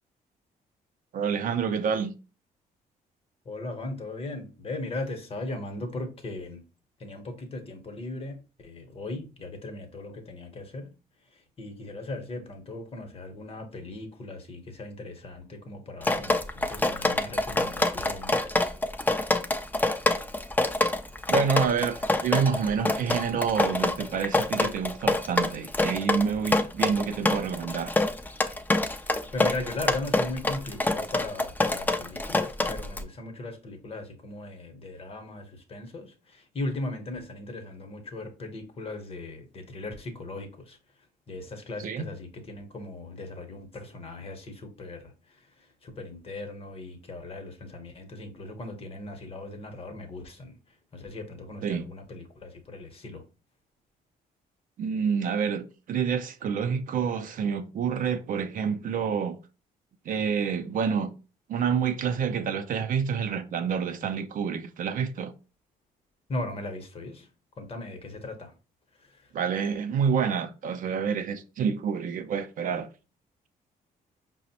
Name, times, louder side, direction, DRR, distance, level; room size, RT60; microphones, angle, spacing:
voice 1, 1.1-2.1 21.3-27.9 41.8-42.0 51.6-51.8 54.8-59.4 60.1-61.1 61.5-65.3 69.3-72.9, right 6 dB, 60° right, 0.4 m, -28 dB
voice 2, 3.4-6.6 7.0-10.9 11.3-18.3 29.3-40.8 41.3-50.6 50.9-53.2 66.3-67.3 67.6-68.5 69.0-69.3, left 2 dB, 40° left, 0.8 m, -38 dB
Drip, 16.0-33.0, left 2 dB, 10° left, 0.4 m, -26 dB
4.9 x 2.0 x 2.7 m
cardioid pair, 100°, 16 cm